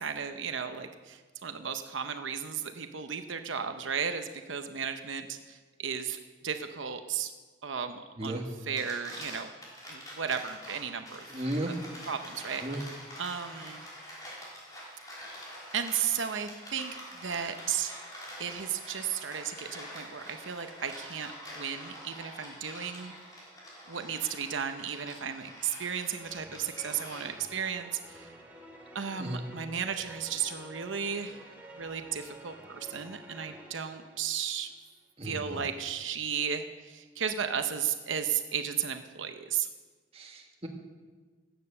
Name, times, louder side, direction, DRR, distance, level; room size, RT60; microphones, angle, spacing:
voice 1, 0.0-6.2 6.4-7.3 7.6-9.5 9.9-11.2 11.7-11.8 12.1-12.9 13.2-13.9 15.7-18.0 18.4-23.1 23.9-28.3 28.9-31.5 31.8-34.7 35.2-39.7, right 7 dB, 85° right, 7 dB, 0.8 m, -34 dB
sound 1, 8.6-27.6, equal, 20° left, 3.6 m, -46 dB
voice 2, 11.3-11.7 12.6-12.8 29.2-29.4 35.2-35.6 40.1-40.7, right 1 dB, 30° right, 2 dB, 1.5 m, -35 dB
sound 2, 26.2-34.7, right 1 dB, 10° right, 2.3 m, -50 dB
15.5 x 9.1 x 6.7 m, 1.4 s
head